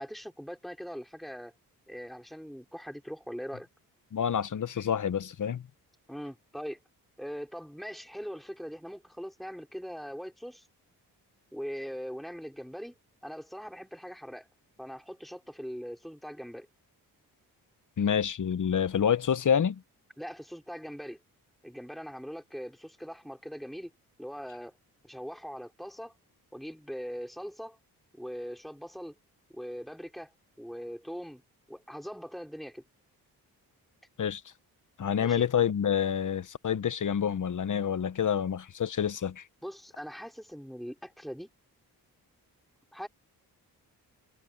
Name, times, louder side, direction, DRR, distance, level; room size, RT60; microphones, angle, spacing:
voice 1, 0.0-1.5 1.9-3.7 6.1-6.8 7.2-10.7 11.5-12.9 13.2-14.5 14.8-16.7 20.2-21.2 21.6-23.9 24.2-24.8 25.0-26.1 26.5-27.8 28.1-29.1 29.5-30.3 30.6-31.4 31.7-32.8 35.2-35.5 39.6-41.5 42.9-43.1, equal, ahead, 5.7 m, -41 dB
voice 2, 4.1-5.7 18.0-19.8 34.2-34.4 35.0-39.4, left 8 dB, 50° left, 1.1 m, -28 dB
cardioid pair, 60°, 40 cm